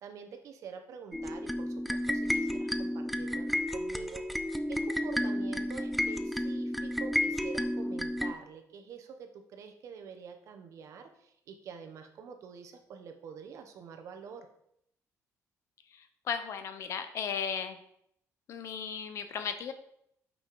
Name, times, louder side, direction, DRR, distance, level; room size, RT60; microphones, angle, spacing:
voice 1, 0.0-4.2 4.7-14.5, right 6 dB, 55° right, 6 dB, 0.9 m, -47 dB
sound 1, 1.1-8.3, left 1 dB, ahead, 0.3 m, -32 dB
voice 2, 16.3-17.8 18.5-19.7, left 7 dB, 50° left, 9 dB, 0.7 m, -35 dB
5.7 x 5.5 x 4.6 m, 0.73 s
cardioid pair, 175°, 6 cm